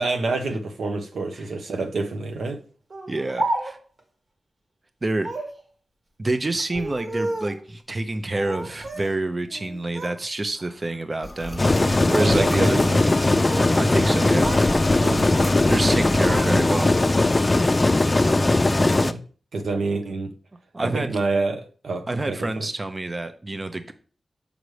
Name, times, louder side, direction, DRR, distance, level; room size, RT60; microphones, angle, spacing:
voice 1, 0.0-2.6 12.2-13.2 15.0-15.2 18.8-19.2 19.5-20.3 20.8-22.7, right 3 dB, 90° right, 5 dB, 0.9 m, -27 dB
Speech, 2.9-4.0 5.2-5.6 6.6-7.6 8.3-9.1 9.5-10.2 10.6-11.0 11.6-12.0 13.1-13.8 14.1-14.7 15.0-15.6 15.9-17.2, right 2 dB, 50° right, 1.6 m, -32 dB
voice 2, 3.1-3.8 5.0-5.3 6.2-12.8 13.8-14.8 15.7-16.9 20.7-21.1 22.1-23.9, right 2 dB, 35° right, 9 dB, 0.6 m, -27 dB
sound 1, 11.2-16.9, left 1 dB, 10° left, 0.9 m, -35 dB
sound 2, 11.6-19.1, left 2 dB, 30° left, 0.4 m, -19 dB
6.6 x 5.0 x 3.2 m, 0.40 s
wide cardioid pair, 75°, 0 cm